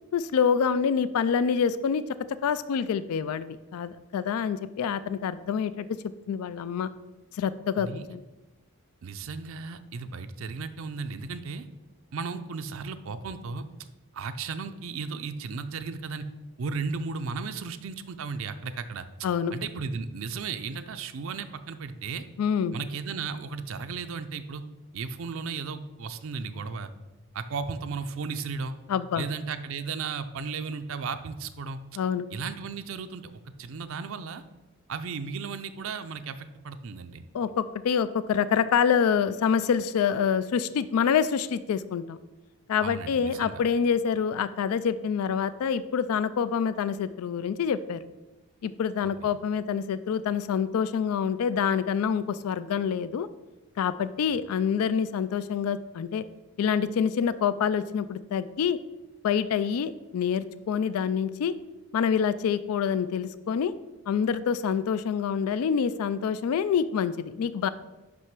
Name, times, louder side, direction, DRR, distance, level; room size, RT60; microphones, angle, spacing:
voice 1, 0.1-2.0 2.4-5.9 6.3-6.9 7.3-8.2 19.2-19.5 22.4-22.7 28.9-29.2 32.0-32.3 37.3-42.2 42.7-48.0 48.6-53.3 53.8-56.2 56.6-58.8 59.2-61.5 61.9-63.7 64.1-67.7, left 7 dB, 80° left, 15 dB, 0.3 m, -26 dB
voice 2, 9.0-11.7 12.1-13.7 14.1-16.2 16.6-22.2 22.7-24.6 24.9-26.9 27.3-28.7 29.1-32.0 32.3-34.4 34.9-37.2 42.8-43.6 49.0-49.3, right 5 dB, 65° right, 9 dB, 0.4 m, -35 dB
6.0 x 5.6 x 6.0 m, 1.1 s
head